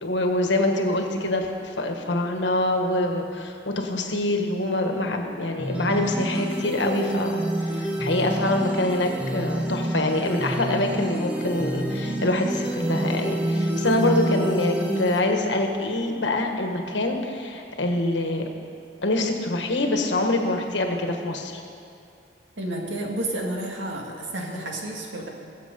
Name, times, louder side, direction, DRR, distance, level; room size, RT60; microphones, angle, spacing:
voice 1, 0.0-18.5 19.0-21.6, left 2 dB, 75° left, 3 dB, 1.4 m, -25 dB
sound 1, 5.6-15.2, right 1 dB, 10° right, 1.2 m, -27 dB
voice 2, 22.6-25.3, right 1 dB, 90° right, 0 dB, 2.1 m, -31 dB
20.5 x 7.6 x 5.3 m, 2.5 s
head